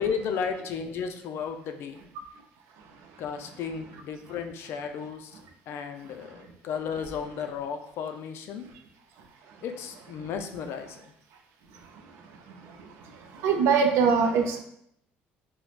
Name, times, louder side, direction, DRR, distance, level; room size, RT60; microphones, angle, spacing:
voice 1, 0.0-2.0 3.2-5.3 5.7-8.7 9.6-11.1, left 6 dB, 65° left, 7 dB, 0.3 m, -34 dB
voice 2, 13.3-14.6, right 5 dB, 75° right, 4 dB, 0.4 m, -22 dB
3.0 x 2.0 x 2.4 m, 0.71 s
supercardioid pair, 85°, 4 cm